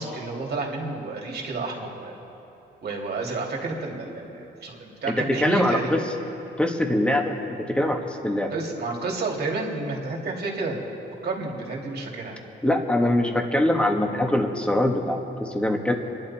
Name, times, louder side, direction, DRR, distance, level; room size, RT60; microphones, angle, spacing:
voice 1, 0.0-2.1 2.8-6.0 8.5-10.8 11.2-12.4, right 3 dB, 55° right, -1 dB, 2.9 m, -30 dB
voice 2, 5.1-6.0 6.6-8.5 12.6-15.9, left 1 dB, 5° left, 2 dB, 1.7 m, -23 dB
26.0 x 11.0 x 4.4 m, 3.0 s
cardioid pair, 90°, 20 cm